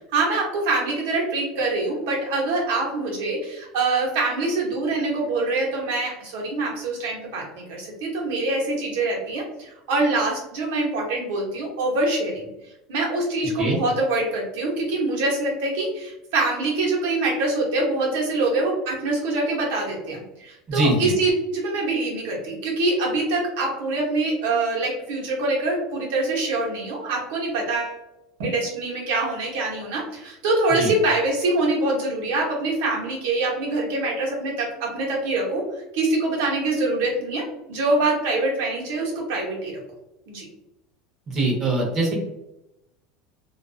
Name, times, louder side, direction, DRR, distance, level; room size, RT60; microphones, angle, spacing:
voice 1, 0.1-12.5 12.9-28.0 28.4-35.6 35.9-37.4 37.7-39.8 40.3-40.4, right 2 dB, 75° right, -2 dB, 0.9 m, -24 dB
voice 2, 20.7-21.1 30.8-30.9 41.3-42.2, right 2 dB, 25° right, -2 dB, 0.7 m, -22 dB
2.4 x 2.3 x 2.3 m, 0.91 s
cardioid pair, 170°, 0 cm